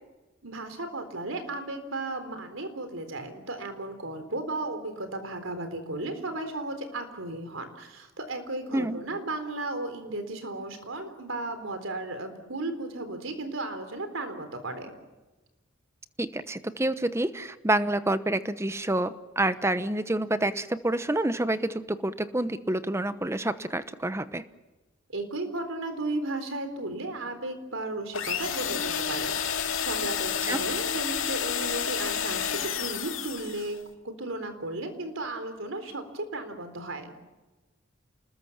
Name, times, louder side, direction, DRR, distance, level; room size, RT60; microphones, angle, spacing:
voice 1, 0.4-14.9 25.1-33.8 34.0-37.1, right 2 dB, 75° right, 8 dB, 4.0 m, -35 dB
voice 2, 16.2-24.4 30.4-30.6, right 1 dB, 15° right, 12 dB, 1.0 m, -28 dB
sound 1, 28.1-33.8, left 7 dB, 75° left, 2.4 m, -30 dB
28.0 x 20.5 x 7.3 m, 1.1 s
head